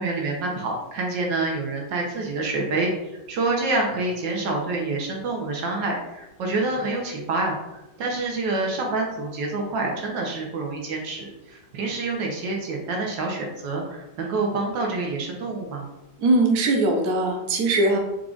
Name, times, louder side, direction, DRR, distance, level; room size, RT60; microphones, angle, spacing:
voice 1, 0.0-2.9 3.3-7.6 8.0-15.9, right 3 dB, 90° right, 0 dB, 1.6 m, -27 dB
voice 2, 16.2-18.0, right 2 dB, 65° right, 1 dB, 1.1 m, -20 dB
4.7 x 2.4 x 3.8 m, 0.96 s
omnidirectional pair, 1.9 m